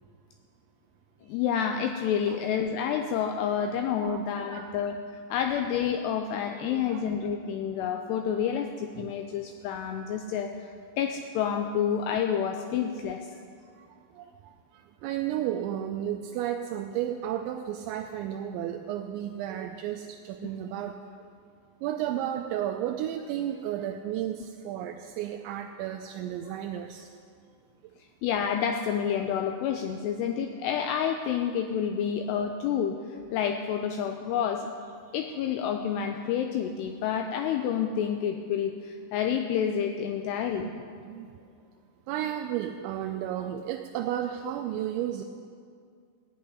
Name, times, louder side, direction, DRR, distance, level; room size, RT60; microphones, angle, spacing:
voice 1, 1.3-5.0 5.3-13.3 26.5-26.6 28.2-34.7 35.1-40.7, left 8 dB, 90° left, 5 dB, 2.4 m, -29 dB
voice 2, 3.5-4.7 6.7-7.2 9.0-9.1 12.9-13.0 14.1-14.3 15.0-21.0 21.8-27.1 40.6-41.3 42.1-45.2, right 11 dB, 85° right, 5 dB, 2.8 m, -33 dB
16.0 x 5.5 x 10.0 m, 2.3 s
omnidirectional pair, 5.3 m